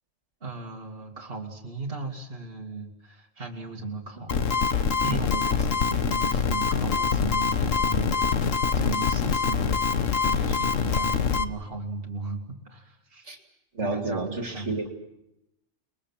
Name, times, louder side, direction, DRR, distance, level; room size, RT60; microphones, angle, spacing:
voice 1, 0.4-13.3 13.8-14.9, right 3 dB, 50° right, 0 dB, 2.7 m, -37 dB
sound 1, 4.3-11.4, left 6 dB, 90° left, 1.6 m, -24 dB
voice 2, 13.7-14.9, right 3 dB, 65° right, 4 dB, 3.0 m, -30 dB
29.5 x 21.5 x 7.4 m, 0.87 s
omnidirectional pair, 1.3 m